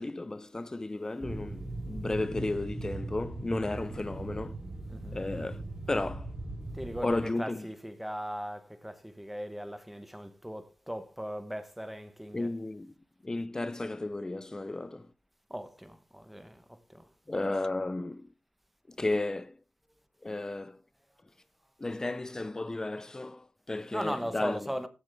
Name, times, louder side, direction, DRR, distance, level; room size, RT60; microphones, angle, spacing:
voice 1, 0.0-4.6 5.1-6.3 7.0-7.7 12.3-12.9 13.2-15.1 17.3-18.3 18.9-19.6 20.2-20.8 21.8-24.7, left 2 dB, 15° left, 0.5 m, -34 dB
sound 1, 1.2-7.2, right 2 dB, 20° right, 4.1 m, -39 dB
voice 2, 4.9-5.2 6.7-12.5 15.5-17.1 23.9-24.9, equal, 5° right, 1.0 m, -39 dB
15.0 x 7.1 x 3.4 m
wide cardioid pair, 170°, 4 cm